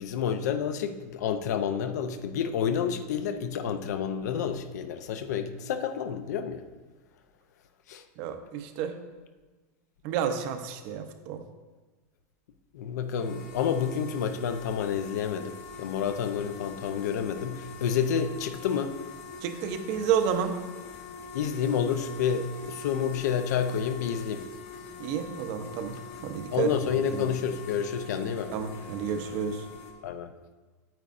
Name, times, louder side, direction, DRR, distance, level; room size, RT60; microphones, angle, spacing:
voice 1, 0.0-6.7 7.9-8.0 12.7-18.9 21.3-24.4 26.5-28.5 30.0-30.3, left 7 dB, 80° left, 9 dB, 0.6 m, -29 dB
voice 2, 8.2-8.9 10.0-11.4 19.4-20.6 25.0-26.7 27.1-27.3 28.5-29.7, right 7 dB, 45° right, 8 dB, 0.6 m, -30 dB
sound 1, 13.1-29.9, left 4 dB, 55° left, 1.3 m, -44 dB
9.0 x 8.2 x 2.5 m, 1.3 s
supercardioid pair, 165°, 9 cm